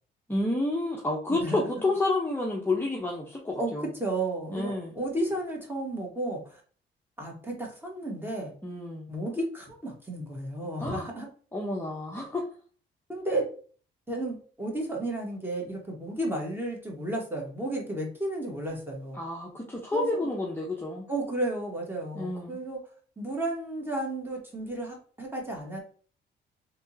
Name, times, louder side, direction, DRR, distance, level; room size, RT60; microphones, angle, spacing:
voice 1, 0.3-3.8 4.5-4.9 8.6-9.1 10.8-11.1 11.5-12.4 19.2-21.1 22.2-22.6, left 2 dB, 10° left, -2 dB, 0.8 m, -30 dB
voice 2, 1.3-1.7 3.6-6.6 7.2-8.5 9.1-11.3 13.1-13.5 14.1-19.2 19.9-20.3 21.1-22.8 23.2-25.8, right 1 dB, 10° right, 0 dB, 1.4 m, -33 dB
3.5 x 2.9 x 2.7 m, 0.43 s
cardioid pair, 90°, 20 cm